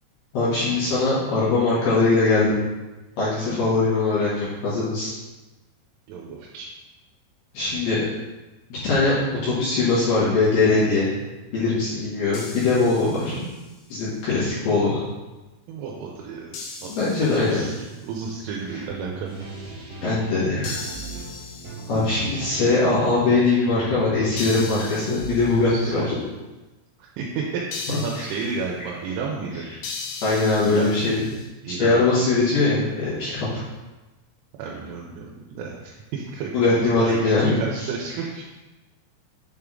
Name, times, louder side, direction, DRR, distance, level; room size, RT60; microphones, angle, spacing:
voice 1, 0.3-2.6 3.2-5.1 7.5-8.0 8.7-9.1 9.4-11.1 11.5-13.4 13.9-15.0 16.9-17.6 20.0-20.8 21.9-26.2 30.2-31.3 31.8-33.5 36.5-37.6, left 3 dB, 65° left, -10 dB, 2.8 m, -21 dB
voice 2, 6.1-6.7 15.7-16.6 16.8-16.9 17.3-19.5 25.7-26.1 27.0-29.7 30.6-31.1 31.6-32.1 34.6-38.4, right 5 dB, 85° right, -2 dB, 3.1 m, -32 dB
sound 1, 12.3-13.8 16.5-18.1 20.6-22.5 24.4-25.8 27.7-28.7 29.8-31.5, left 4 dB, 80° left, 3.3 m, -38 dB
sound 2, 18.8-26.1, right 3 dB, 65° right, 1.6 m, -38 dB
7.6 x 3.4 x 3.7 m, 1.1 s
omnidirectional pair, 5.8 m